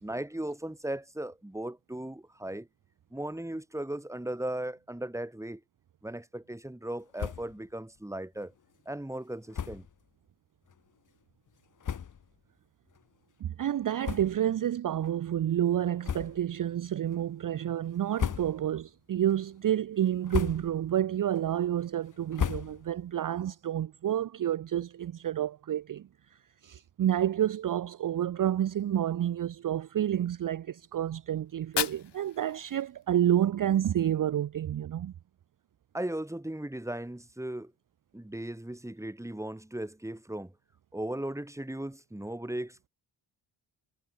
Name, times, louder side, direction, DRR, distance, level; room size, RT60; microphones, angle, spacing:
voice 1, 0.0-2.7 3.1-5.6 6.0-8.5 8.9-9.8 35.9-37.7 38.1-40.5 40.9-42.9, right 1 dB, 5° right, 2.5 m, -37 dB
sound 1, 7.1-7.6 8.0-8.1 8.4-8.5 9.5-9.9 10.7-10.8 11.5-11.6 11.8-12.4 12.9-13.0 14.0-14.7 15.0-15.2 16.0-16.6 17.0-17.5 18.0-18.8 19.2-19.7 20.1-20.9 21.3-23.1, left 8 dB, 40° left, 1.2 m, -36 dB
voice 2, 13.4-26.1 26.6-35.1, right 11 dB, 45° right, 0.7 m, -29 dB
Fire, 31.5-33.5, left 9 dB, 60° left, 1.9 m, -36 dB
cardioid pair, 70°, 47 cm